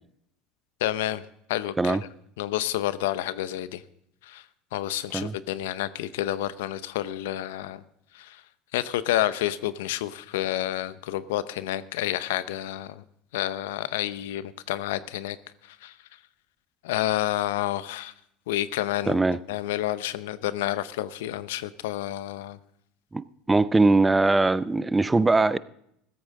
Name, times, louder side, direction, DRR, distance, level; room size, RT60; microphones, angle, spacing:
voice 1, 0.8-1.2 1.5-2.0 2.4-3.8 4.3-4.4 4.7-7.8 8.1-8.4 8.7-13.0 13.3-15.4 15.8-15.9 16.8-18.1 18.5-19.2 19.5-22.6, left 13 dB, 85° left, 0.6 m, -29 dB
voice 2, 19.1-19.4 23.1-25.6, right 3 dB, 15° right, 0.5 m, -21 dB
15.5 x 13.5 x 3.8 m
supercardioid pair, 95°, 0 cm